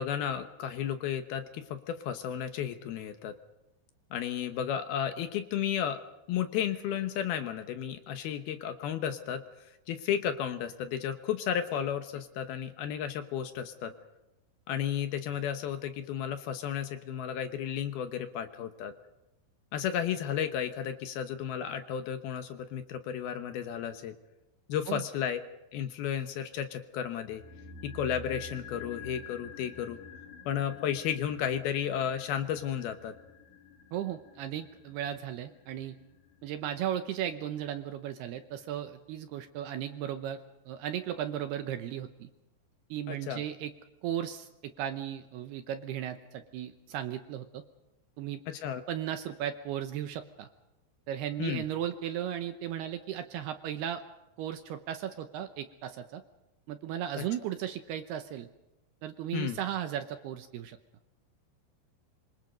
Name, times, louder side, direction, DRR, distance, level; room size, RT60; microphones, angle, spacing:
voice 1, 0.0-3.3 4.1-6.0 6.3-9.4 9.9-13.9 14.7-18.9 19.7-24.1 24.7-25.4 25.7-27.4 27.8-30.0 30.5-33.2 43.1-43.4 48.5-48.8 51.4-51.7 57.2-57.3 59.3-59.6, left 9 dB, 70° left, 8 dB, 2.6 m, -33 dB
sound 1, 27.3-37.5 37.8-37.9, left 4 dB, 50° left, 3.4 m, -49 dB
voice 2, 33.9-36.0 36.4-40.4 40.7-42.3 42.9-43.7 44.0-47.6 48.2-48.4 48.9-50.5 51.1-54.0 54.4-56.2 56.7-58.5 59.0-60.8, right 10 dB, 75° right, 8 dB, 2.6 m, -36 dB
26.0 x 25.5 x 5.3 m, 0.94 s
omnidirectional pair, 5.4 m